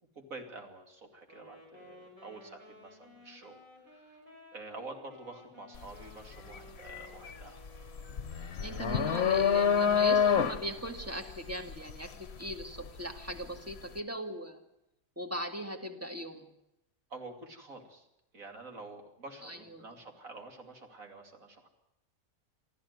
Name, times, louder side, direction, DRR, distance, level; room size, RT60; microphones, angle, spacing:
voice 1, 0.2-3.6 3.8-4.2 4.5-7.6 8.6-9.4 17.1-18.1 18.3-21.7, right 3 dB, 70° right, 4 dB, 3.1 m, -48 dB
Wind instrument woodwind instrument, 1.2-8.5, equal, 35° right, 5.6 m, -55 dB
sound 1, 5.7-6.0 6.4-13.4, left 7 dB, 50° left, 1.2 m, -28 dB
voice 2, 8.6-14.6 15.2-16.5 19.4-19.8, right 1 dB, 10° right, 4 dB, 2.0 m, -39 dB
24.0 x 14.0 x 9.5 m, 0.86 s
omnidirectional pair, 1.5 m